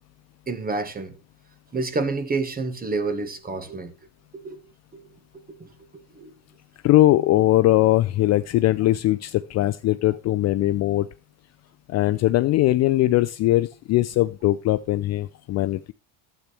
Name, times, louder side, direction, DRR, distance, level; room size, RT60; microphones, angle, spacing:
voice 1, 0.5-1.2 1.7-3.9 4.3-4.6 4.9-5.0 5.5-5.6 5.9-6.3, right 3 dB, 20° right, 1.5 m, -29 dB
voice 2, 6.8-11.1 11.9-15.9, left 15 dB, 40° left, 0.4 m, -20 dB
12.0 x 8.4 x 3.4 m
cardioid pair, 125°, 44 cm